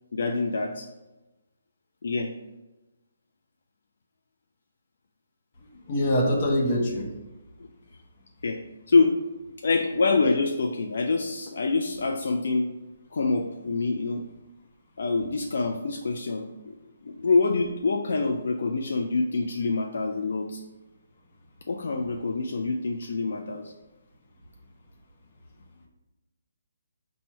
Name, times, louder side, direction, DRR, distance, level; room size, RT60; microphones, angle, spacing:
voice 1, 0.1-0.9 2.0-2.3 8.4-8.6 8.9-9.1 9.6-12.7 13.1-14.2 15.0-16.7 17.0-20.6 21.7-23.7, left 3 dB, 65° left, 3 dB, 0.3 m, -26 dB
voice 2, 5.7-7.1, equal, 35° left, 0 dB, 0.7 m, -24 dB
4.4 x 2.1 x 4.4 m, 1.0 s
hypercardioid pair, 155°, 0 cm